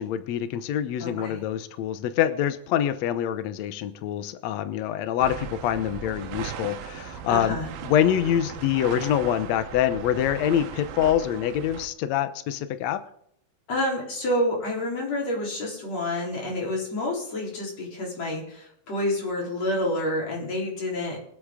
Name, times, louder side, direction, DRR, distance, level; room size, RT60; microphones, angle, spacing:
voice 1, 0.0-7.6 7.8-13.0, left 10 dB, 90° left, 11 dB, 1.5 m, -25 dB
voice 2, 1.0-1.4 7.3-7.7 13.7-21.2, left 1 dB, 45° left, -2 dB, 4.9 m, -28 dB
sound 1, 5.2-11.9, right 8 dB, 80° right, 2.8 m, -37 dB
23.5 x 8.2 x 3.7 m, 0.71 s
omnidirectional pair, 4.2 m